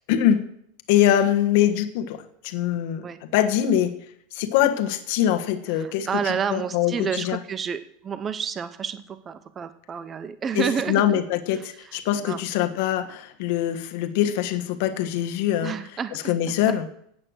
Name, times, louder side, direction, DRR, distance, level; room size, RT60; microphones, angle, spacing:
voice 1, 0.1-0.4 0.9-4.0 4.3-7.4 10.5-15.7 16.1-16.9, left 11 dB, 60° left, 8 dB, 1.4 m, -23 dB
voice 2, 5.8-11.2 11.5-11.6 12.2-12.4 15.6-16.8, right 7 dB, 25° right, 12 dB, 0.7 m, -30 dB
14.5 x 8.9 x 6.4 m, 0.71 s
supercardioid pair, 145°, 0 cm